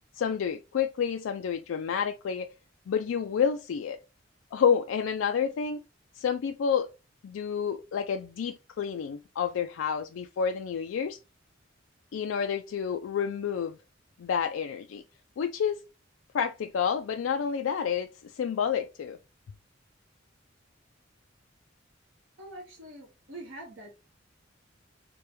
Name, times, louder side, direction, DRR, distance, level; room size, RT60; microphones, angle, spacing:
voice 1, 0.1-2.5 2.9-4.0 4.5-5.8 6.1-6.9 7.2-11.2 12.1-13.8 14.2-15.0 15.4-15.8 16.3-19.2, left 7 dB, 85° left, 0.3 m, -29 dB
voice 2, 22.4-23.9, right 1 dB, 85° right, 1.3 m, -44 dB
5.0 x 2.2 x 2.9 m
head